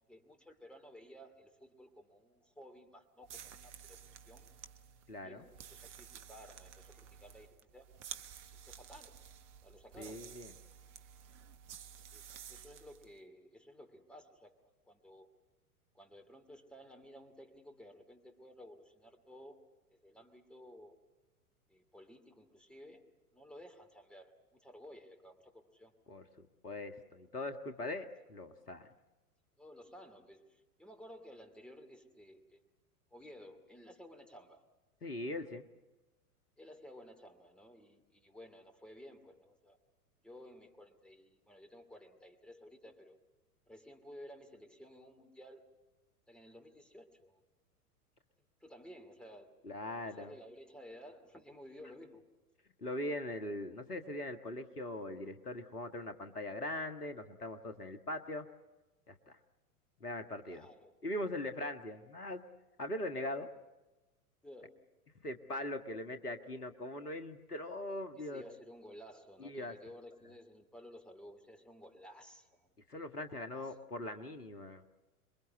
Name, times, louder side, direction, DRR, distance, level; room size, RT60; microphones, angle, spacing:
voice 1, 0.1-4.4 5.2-7.9 8.5-9.3 9.6-10.3 12.1-14.6 14.9-15.3 15.9-19.6 19.9-20.9 21.7-24.3 24.6-25.9 29.6-32.6 33.1-34.6 36.6-39.8 40.2-43.2 43.7-45.6 46.3-47.4 48.6-49.6 50.0-52.3 60.5-61.0 64.4-64.8 68.1-72.7 73.5-73.7, equal, ahead, 5 dB, 2.5 m, -55 dB
sound 1, 3.2-13.1, right 8 dB, 50° right, 1.4 m, -52 dB
voice 2, 5.1-5.5 10.0-10.5 26.1-26.2 26.6-28.9 35.0-35.6 49.6-50.3 52.8-58.5 59.1-59.4 60.0-60.7 61.0-62.4 62.8-63.5 65.2-68.4 69.4-69.7 72.9-74.8, left 1 dB, 80° left, 8 dB, 1.7 m, -41 dB
27.5 x 22.5 x 8.3 m, 1.1 s
figure-of-eight pair, 95°, 45 cm